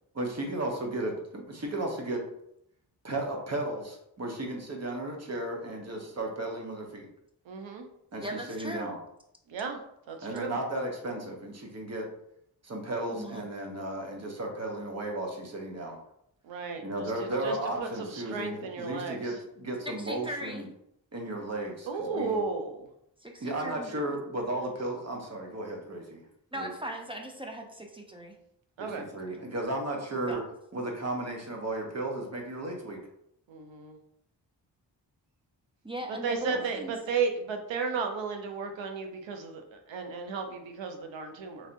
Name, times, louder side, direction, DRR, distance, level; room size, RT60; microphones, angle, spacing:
voice 1, 0.1-2.2 3.0-7.1 8.1-9.0 10.2-12.1 12.6-16.0 16.8-20.7 21.1-22.4 23.4-26.2 26.5-26.7 28.8-30.4 30.7-33.1 36.5-36.7, right 1 dB, 35° right, 1 dB, 0.9 m, -34 dB
voice 2, 7.5-7.9 9.5-9.8 10.1-10.6 16.4-19.3 21.9-22.9 28.8-29.1 33.5-34.0 36.2-41.7, right 5 dB, 90° right, 5 dB, 0.6 m, -34 dB
voice 3, 8.2-8.9 13.1-13.4 17.3-17.5 19.9-20.7 23.2-23.9 26.5-28.4 30.3-30.4 35.8-36.9, right 1 dB, 10° right, 2 dB, 0.5 m, -39 dB
3.2 x 2.8 x 2.6 m, 0.76 s
cardioid pair, 45°, 44 cm